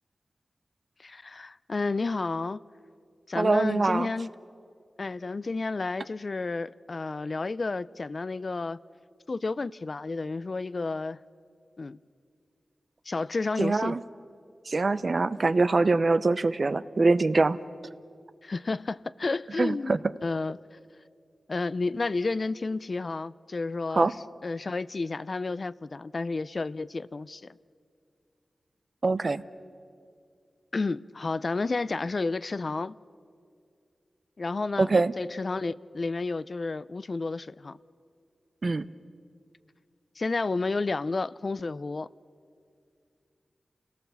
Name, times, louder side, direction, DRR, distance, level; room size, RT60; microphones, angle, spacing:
voice 1, 1.0-2.6 3.3-4.3 5.0-8.8 9.3-11.2 11.8-12.0 13.1-14.0 18.4-20.6 21.5-24.2 24.4-27.4 30.7-32.9 34.4-34.9 35.2-37.8 40.2-42.1, left 3 dB, 55° left, 0.5 m, -31 dB
voice 2, 3.3-4.1 13.6-14.0 14.7-17.6 19.6-20.0 23.9-24.1 29.0-29.4 34.8-35.1 38.6-38.8, right 3 dB, 55° right, 0.7 m, -23 dB
29.0 x 18.0 x 7.0 m
cardioid pair, 40°, 0 cm